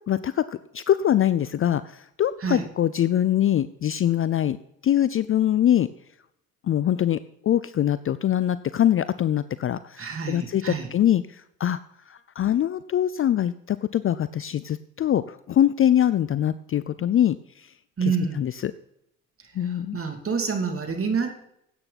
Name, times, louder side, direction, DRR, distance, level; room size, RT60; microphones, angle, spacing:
voice 1, 0.1-4.6 4.8-5.9 6.7-11.8 12.1-17.7 18.4-18.7 19.6-20.0, left 11 dB, 35° left, 16 dB, 0.5 m, -23 dB
voice 2, 10.0-10.9 18.0-18.4 19.6-21.4, right 5 dB, 35° right, 4 dB, 2.8 m, -28 dB
17.0 x 8.8 x 4.2 m, 0.76 s
hypercardioid pair, 60°, 40 cm